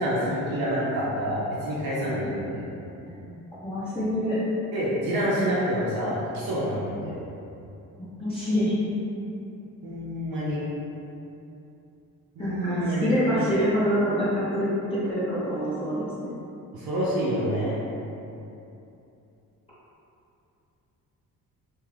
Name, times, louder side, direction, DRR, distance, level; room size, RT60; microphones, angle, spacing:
voice 1, 0.0-2.6 4.7-7.2 9.8-10.6 12.3-13.4 16.7-17.7, equal, 75° right, -8 dB, 0.7 m, -27 dB
voice 2, 3.1-4.4 8.2-8.7 12.4-16.3, equal, 15° left, -13 dB, 0.9 m, -26 dB
2.7 x 2.3 x 3.2 m, 2.8 s
cardioid pair, 75°, 36 cm